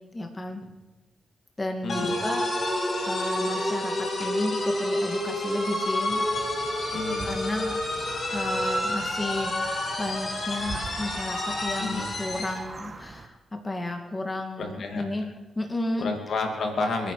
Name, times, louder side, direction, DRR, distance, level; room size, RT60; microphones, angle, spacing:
voice 1, 0.1-0.6 1.6-2.5 3.0-6.3 7.2-7.8 8.3-15.3 15.6-16.1, left 2 dB, 25° left, 3 dB, 2.2 m, -33 dB
voice 2, 1.8-2.1 6.9-7.3 11.8-12.1 14.6-15.0 16.0-17.1, left 3 dB, 70° left, 3 dB, 2.6 m, -30 dB
sound 1, 1.9-12.6, left 1 dB, 55° left, 6.4 m, -29 dB
sound 2, 6.1-13.3, right 4 dB, 40° right, 1.6 m, -42 dB
29.0 x 9.7 x 5.0 m, 1.2 s
cardioid pair, 70°, 0 cm